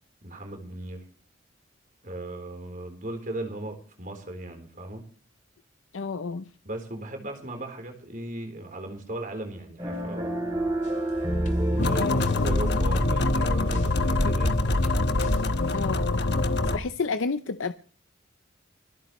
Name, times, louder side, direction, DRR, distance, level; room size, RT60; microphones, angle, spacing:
voice 1, 0.2-1.0 2.0-5.0 6.7-10.5 11.7-14.6, right 1 dB, 45° right, 4.0 m, -37 dB
voice 2, 5.9-6.5 12.0-12.2 15.7-16.2 16.7-17.7, left 4 dB, 85° left, 0.6 m, -30 dB
sound 1, 9.8-13.0, right 1 dB, 20° right, 2.8 m, -29 dB
sound 2, 10.8-11.1 11.4-14.1 14.4-15.8, equal, 40° left, 2.5 m, -38 dB
sound 3, 11.8-16.8, left 2 dB, 60° left, 1.2 m, -24 dB
26.5 x 9.3 x 3.2 m
head